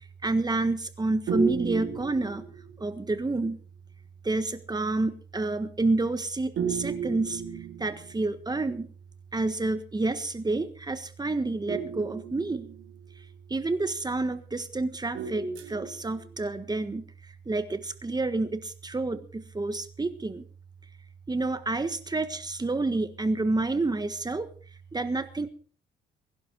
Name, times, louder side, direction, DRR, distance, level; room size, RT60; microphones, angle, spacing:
voice 1, 0.2-2.4 2.8-3.6 4.2-7.4 7.8-8.9 9.3-12.6 13.5-17.0 17.5-20.4 21.3-24.5 24.9-25.5, right 2 dB, 20° right, 11 dB, 1.5 m, -29 dB
sound 1, 1.3-3.0 6.6-8.4 11.7-13.2 15.1-16.3, right 6 dB, 70° right, 3.9 m, -33 dB
21.5 x 11.5 x 4.6 m, 0.40 s
cardioid pair, 90°, 20 cm